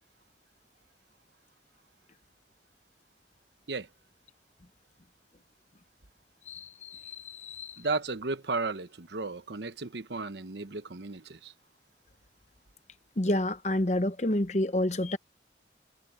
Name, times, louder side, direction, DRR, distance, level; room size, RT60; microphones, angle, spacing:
voice 1, 6.5-7.8 13.2-15.2, left 1 dB, 40° left, 0.9 m, -29 dB
voice 2, 7.8-11.5, right 3 dB, 80° right, 1.1 m, -34 dB
head